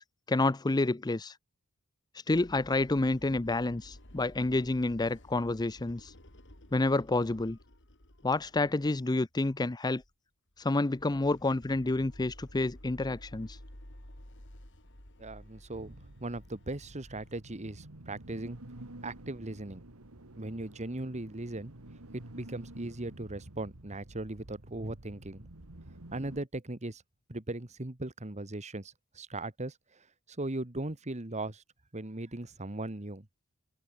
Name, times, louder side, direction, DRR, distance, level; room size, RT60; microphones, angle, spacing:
voice 1, 0.0-1.4 2.3-6.1 6.7-7.6 8.2-10.0 10.6-13.6, left 2 dB, 20° left, 0.5 m, -29 dB
sound 1, 2.3-9.0 9.3-9.6 10.0-10.1 10.6-17.3, left 1 dB, 55° left, 5.2 m, -53 dB
voice 2, 15.2-15.9 16.2-18.6 19.0-19.8 20.4-21.7 22.1-25.5 26.1-27.0 27.3-29.7 30.4-31.6 31.9-33.3, right 2 dB, 30° right, 1.6 m, -38 dB
sound 2, 15.7-26.4, right 1 dB, 75° right, 2.2 m, -50 dB
head